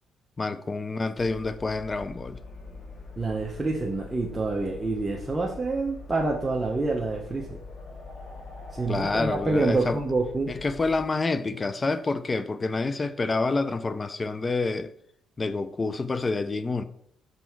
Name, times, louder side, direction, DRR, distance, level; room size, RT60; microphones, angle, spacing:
voice 1, 0.4-2.4 8.9-10.0 10.5-14.9 15.4-16.8, left 3 dB, 30° left, 0.5 m, -28 dB
sound 1, 1.1-11.0, left 3 dB, 45° left, 1.9 m, -43 dB
voice 2, 3.2-7.6 8.7-10.5, right 3 dB, 20° right, 0.9 m, -27 dB
6.7 x 4.2 x 4.6 m
cardioid pair, 90°, 0 cm